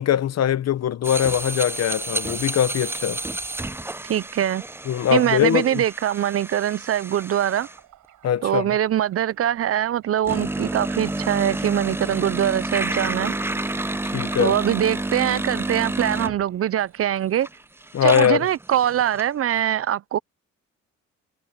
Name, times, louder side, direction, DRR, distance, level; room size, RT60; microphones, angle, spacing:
voice 1, 0.0-3.2 4.9-5.8 8.2-8.7 14.0-14.6 17.9-18.4, left 10 dB, 55° left, 1.0 m, -21 dB
sound 1, 1.0-7.8 10.2-16.4 17.1-17.2 17.4-19.2, right 2 dB, 10° right, 0.6 m, -30 dB
voice 2, 4.1-4.6 5.1-7.7 8.4-13.3 14.4-17.5 18.0-20.2, right 11 dB, 50° right, 0.6 m, -23 dB
sound 2, 7.2-17.6, right 13 dB, 85° right, 5.7 m, -51 dB
cardioid pair, 90°, 30 cm